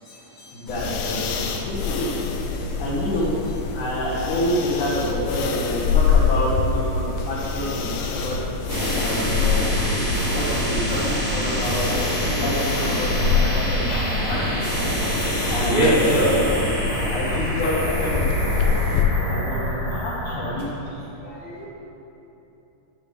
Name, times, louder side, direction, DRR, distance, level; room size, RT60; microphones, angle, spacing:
voice 1, 0.5-2.1 2.8-3.3 3.7-8.4 9.0-9.7 10.3-11.8 12.3-14.6 15.5-15.9 17.1-18.3 18.7-19.0 19.2-20.8, left 1 dB, 70° left, -7 dB, 1.9 m, -28 dB
sound 1, 0.7-19.0, left 5 dB, 90° left, 2.1 m, -26 dB
sound 2, 8.7-20.6, equal, 35° right, 1.3 m, -26 dB
voice 2, 13.9-14.3 15.7-16.3 20.2-20.5 21.2-21.6, right 1 dB, 90° right, -11 dB, 0.9 m, -24 dB
12.5 x 6.3 x 3.5 m, 3.0 s
omnidirectional pair, 4.9 m